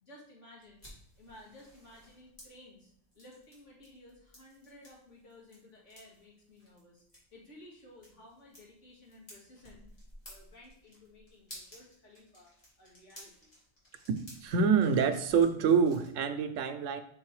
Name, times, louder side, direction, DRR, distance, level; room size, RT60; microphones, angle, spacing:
voice 1, 0.0-0.8 1.2-7.0 7.3-10.0 10.3-12.5 12.8-13.5, left 1 dB, 75° left, -4 dB, 2.5 m, -55 dB
sound 1, 0.6-16.1, equal, 35° left, 2.5 m, -56 dB
voice 2, 14.4-17.0, right 6 dB, 90° right, 9 dB, 1.0 m, -26 dB
6.2 x 3.9 x 4.8 m, 0.68 s
omnidirectional pair, 1.3 m